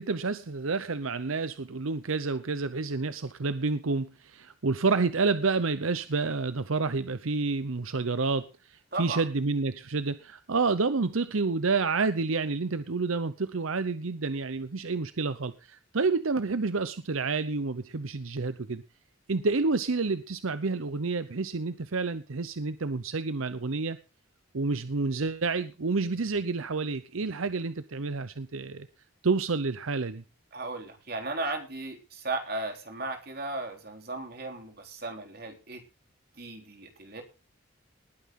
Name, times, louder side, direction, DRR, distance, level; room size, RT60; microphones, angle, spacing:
voice 1, 0.0-18.8 19.3-24.0 24.5-28.9 29.2-30.2, right 4 dB, 80° right, 13 dB, 0.8 m, -29 dB
voice 2, 8.9-9.2 30.5-35.8 36.4-37.2, right 2 dB, 45° right, 4 dB, 3.7 m, -36 dB
20.0 x 9.4 x 3.8 m, 0.31 s
head